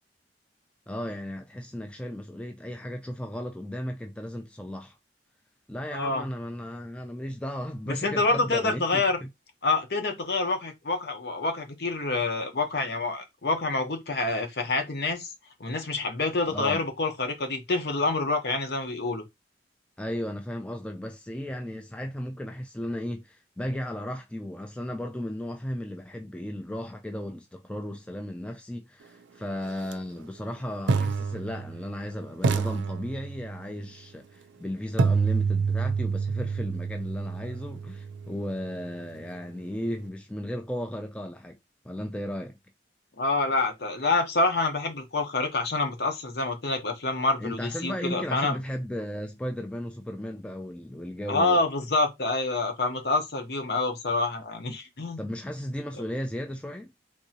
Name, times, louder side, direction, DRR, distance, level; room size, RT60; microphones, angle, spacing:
voice 1, 0.9-4.9 5.7-9.3 16.5-16.8 20.0-41.6 41.8-42.6 47.4-51.6 55.2-56.9, equal, 5° left, 0.3 m, -35 dB
voice 2, 5.9-6.2 7.9-9.2 9.6-15.3 15.6-19.2 43.2-48.6 51.3-55.2, left 3 dB, 65° left, 0.8 m, -27 dB
sound 1, 29.8-29.9 30.9-32.0 32.4-33.7 35.0-38.9, right 4 dB, 85° right, 0.4 m, -28 dB
3.6 x 2.7 x 2.7 m
head